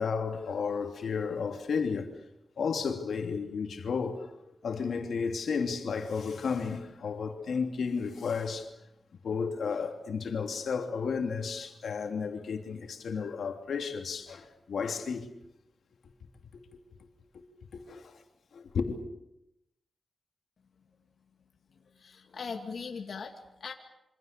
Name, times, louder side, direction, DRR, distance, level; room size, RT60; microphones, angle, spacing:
voice 1, 0.0-2.1 2.6-4.3 4.6-8.7 9.2-15.3 16.5-16.6 17.3-17.4 17.7-18.1 18.5-19.0, left 5 dB, 85° left, 3.2 m, -33 dB
voice 2, 21.7-23.7, left 5 dB, 65° left, 2.4 m, -40 dB
27.5 x 25.5 x 6.9 m
wide cardioid pair, 115°, 0 cm